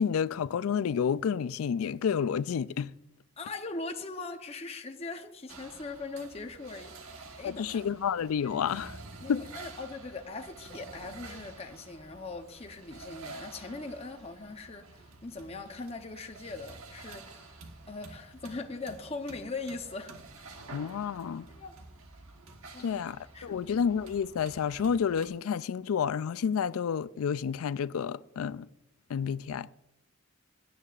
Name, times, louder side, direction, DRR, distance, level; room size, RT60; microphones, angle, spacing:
voice 1, 0.0-2.9 7.4-8.9 9.3-9.5 20.7-21.5 22.8-28.7 29.1-29.7, left 7 dB, 85° left, 0.4 m, -30 dB
voice 2, 3.4-7.7 9.2-17.6 17.9-20.5 21.5-21.7 22.7-23.0 23.3-23.7, left 3 dB, 30° left, 0.7 m, -41 dB
sound 1, 5.5-25.3, right 3 dB, 90° right, 1.2 m, -49 dB
16.0 x 9.5 x 2.4 m
head